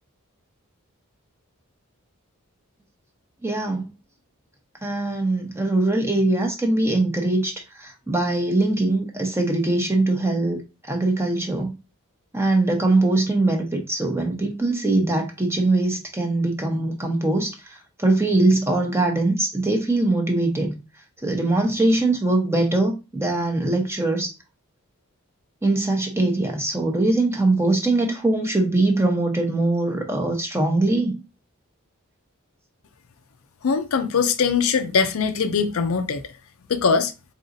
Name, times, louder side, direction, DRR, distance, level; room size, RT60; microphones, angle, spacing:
voice 1, 3.4-3.8 4.8-10.6 10.9-11.8 12.3-20.8 21.2-24.3 25.6-31.2, right 2 dB, 10° right, 0.8 m, -22 dB
voice 2, 33.6-36.2 36.7-37.1, left 5 dB, 65° left, 0.5 m, -21 dB
3.9 x 3.9 x 2.6 m
head